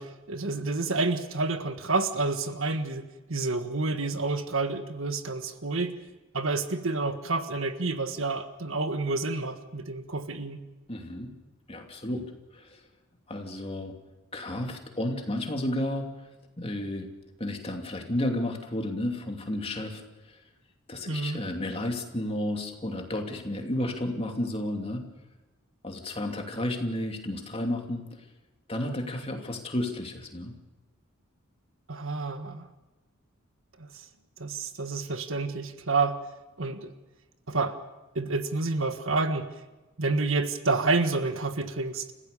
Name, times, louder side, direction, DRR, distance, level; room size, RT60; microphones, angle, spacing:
voice 1, 0.0-5.9 6.3-10.6 21.0-21.4 31.9-32.7 33.8-34.0 34.4-36.2 36.6-36.9 37.5-37.8 38.1-39.5 40.0-42.0, right 3 dB, 70° right, 8 dB, 1.5 m, -29 dB
voice 2, 10.9-11.3 11.7-12.8 13.3-13.9 14.3-16.1 16.6-17.1 17.4-20.4 20.9-25.0 25.8-28.0 28.7-30.5, left 1 dB, 30° left, 2 dB, 2.8 m, -32 dB
30.0 x 15.5 x 6.9 m, 1.1 s
head